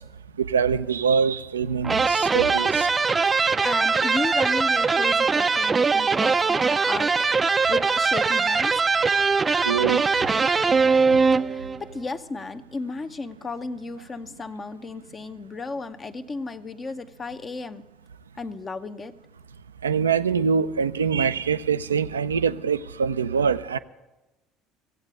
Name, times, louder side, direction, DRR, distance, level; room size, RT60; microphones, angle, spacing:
voice 1, 0.4-2.9 9.6-10.2 19.8-23.8, right 6 dB, 85° right, 14 dB, 0.4 m, -24 dB
sound 1, 1.8-11.8, right 4 dB, 25° right, 0.4 m, -21 dB
voice 2, 3.6-8.8 11.4-17.8 18.4-19.1, left 3 dB, 30° left, 8 dB, 0.8 m, -34 dB
15.5 x 8.1 x 8.7 m, 1.1 s
figure-of-eight pair, 65°, 0 cm